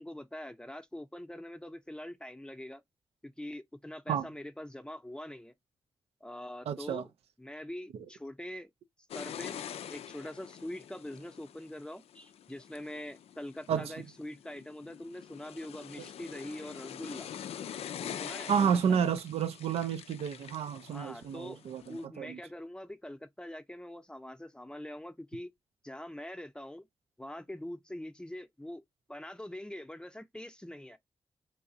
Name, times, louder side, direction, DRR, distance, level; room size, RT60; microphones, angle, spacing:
voice 1, 0.0-2.8 3.2-5.5 6.2-7.1 7.4-8.7 9.1-9.6 9.9-17.3 18.0-19.0 20.9-21.6 21.9-25.5 25.8-26.9 27.2-28.8 29.1-31.0, left 1 dB, 10° left, 0.6 m, -43 dB
voice 2, 6.7-7.0 7.9-8.1 13.7-14.1 18.5-22.4, right 7 dB, 90° right, 0.4 m, -31 dB
sound 1, 9.1-22.0, left 9 dB, 85° left, 0.4 m, -45 dB
4.0 x 2.3 x 2.7 m
cardioid pair, 60°, 10 cm